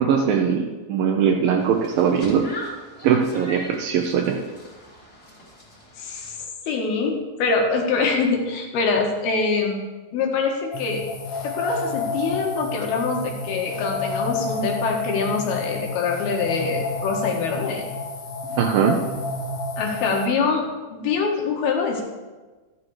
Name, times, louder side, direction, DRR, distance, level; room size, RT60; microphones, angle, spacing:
voice 1, 0.0-2.5 3.0-4.4 18.5-19.0, right 7 dB, 75° right, 1 dB, 2.4 m, -20 dB
sound 1, 1.6-6.4, left 1 dB, 20° left, 2.3 m, -41 dB
voice 2, 6.0-6.3 6.7-9.8 10.1-11.0 11.4-17.9 19.8-20.6 20.9-22.0, left 4 dB, 80° left, 1 dB, 3.5 m, -24 dB
sound 2, 10.7-20.3, left 3 dB, 60° left, 2.2 m, -30 dB
13.0 x 8.8 x 4.8 m, 1.3 s
omnidirectional pair, 4.3 m